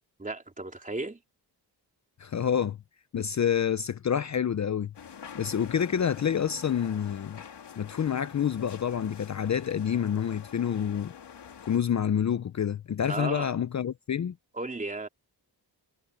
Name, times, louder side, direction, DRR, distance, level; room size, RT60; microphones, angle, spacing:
voice 1, 0.2-1.2 13.1-13.5 14.5-15.1, right 2 dB, 20° right, 3.5 m, -34 dB
voice 2, 2.2-2.8 3.1-4.9 5.3-7.4 7.8-11.1 11.6-14.3, left 8 dB, 45° left, 0.5 m, -28 dB
sound 1, 4.9-11.8, left 7 dB, 90° left, 3.0 m, -46 dB
wide cardioid pair, 155°, 40 cm